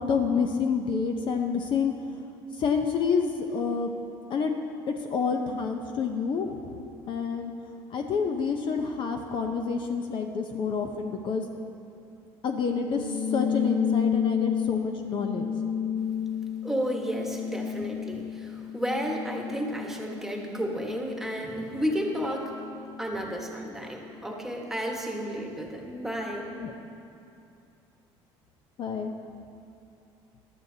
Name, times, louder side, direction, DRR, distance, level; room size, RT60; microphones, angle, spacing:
voice 1, 0.0-1.9 2.6-3.9 4.3-4.5 4.9-6.8 7.1-7.5 7.9-11.4 12.4-15.4 26.6-26.7 28.8-29.1, left 5 dB, 50° left, 4 dB, 0.8 m, -28 dB
sound 1, 12.8-23.7, left 8 dB, 85° right, 1.3 m, -32 dB
voice 2, 16.6-22.5 23.0-26.5, equal, 5° right, 0 dB, 1.5 m, -32 dB
14.5 x 12.0 x 2.8 m, 2.6 s
cardioid pair, 110°, 11 cm